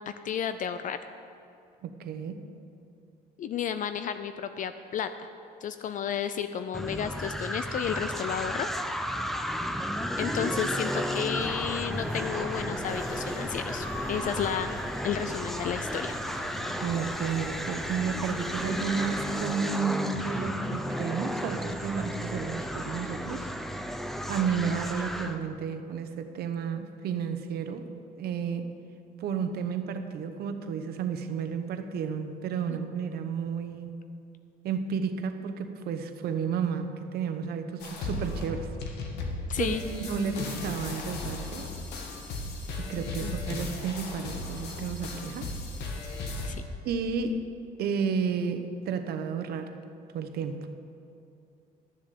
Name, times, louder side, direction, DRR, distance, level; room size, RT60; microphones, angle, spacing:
voice 1, 0.2-1.0 3.4-5.3 5.6-8.7 10.2-14.7 15.0-16.1 32.7-32.8 39.5-39.8 43.2-43.3 46.4-46.6, left 8 dB, 50° left, 10 dB, 0.5 m, -32 dB
voice 2, 1.8-2.4 16.8-23.5 24.3-27.9 28.2-28.7 29.2-34.0 34.6-38.7 39.6-41.7 42.7-45.5 46.8-47.5 47.8-49.7 50.1-50.7, right 6 dB, 70° right, 8 dB, 0.9 m, -32 dB
sound 1, 6.7-25.4, equal, ahead, 0.7 m, -33 dB
sound 2, 10.8-19.3, equal, 20° left, 1.9 m, -41 dB
sound 3, 37.8-46.5, left 2 dB, 75° left, 1.7 m, -36 dB
12.0 x 7.3 x 6.8 m, 2.6 s
cardioid pair, 110°, 17 cm